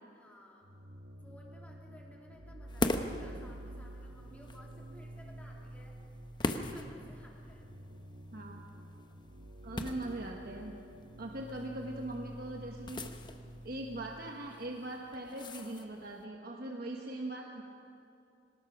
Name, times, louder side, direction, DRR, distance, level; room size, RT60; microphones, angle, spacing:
voice 1, 0.1-0.7 1.2-6.0 6.4-7.7, left 1 dB, 10° left, -2 dB, 3.2 m, -57 dB
sound 1, 0.6-14.3, right 1 dB, 90° right, 1.4 m, -49 dB
sound 2, 2.7-16.2, left 2 dB, 25° left, 0.9 m, -42 dB
voice 2, 9.6-10.7 11.2-13.0 13.6-17.6, right 1 dB, 55° right, 1 dB, 1.3 m, -41 dB
23.0 x 19.5 x 6.0 m, 2.6 s
head